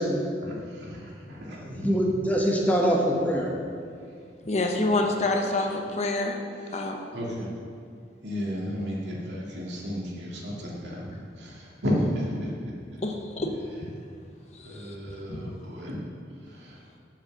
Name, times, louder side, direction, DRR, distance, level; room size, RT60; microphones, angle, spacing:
voice 1, 0.4-1.9 7.1-7.5 8.2-11.1 11.4-12.5 14.6-16.0 16.5-16.8, equal, 80° right, -4 dB, 2.3 m, -33 dB
voice 2, 1.5-3.5, equal, 10° left, -1 dB, 1.0 m, -24 dB
voice 3, 4.4-6.4 6.7-7.0 11.1-11.2 13.0-13.5 14.8-14.9 15.3-15.4, left 2 dB, 40° left, 2 dB, 0.8 m, -27 dB
7.4 x 7.1 x 6.6 m, 2.3 s
head